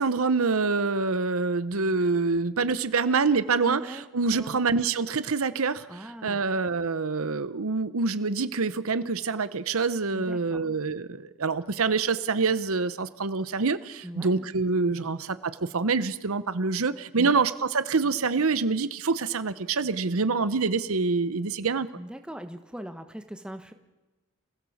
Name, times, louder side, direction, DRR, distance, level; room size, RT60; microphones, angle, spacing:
voice 1, 0.0-21.9, right 4 dB, 70° right, 14 dB, 0.8 m, -26 dB
voice 2, 3.7-4.7 5.9-6.4 10.1-10.7 14.0-14.5 14.9-15.1 17.2-17.4 22.0-23.7, equal, 5° right, 7 dB, 1.2 m, -40 dB
27.0 x 16.5 x 7.2 m, 1.1 s
head